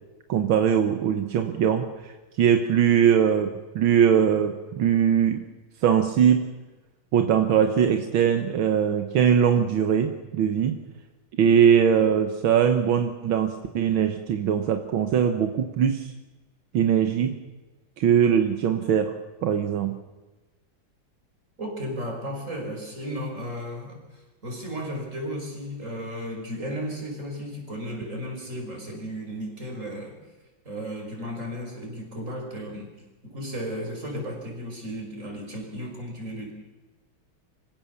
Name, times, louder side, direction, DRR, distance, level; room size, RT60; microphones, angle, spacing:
voice 1, 0.3-2.1 2.4-3.5 3.8-5.4 5.8-6.4 7.1-10.8 11.4-16.1 16.7-17.3 18.0-19.1 19.4-20.0, right 8 dB, 80° right, 7 dB, 2.0 m, -21 dB
voice 2, 21.6-30.2 30.6-33.0 33.2-36.5, equal, 35° right, 1 dB, 6.0 m, -34 dB
25.5 x 16.5 x 7.2 m, 1.2 s
omnidirectional pair, 2.2 m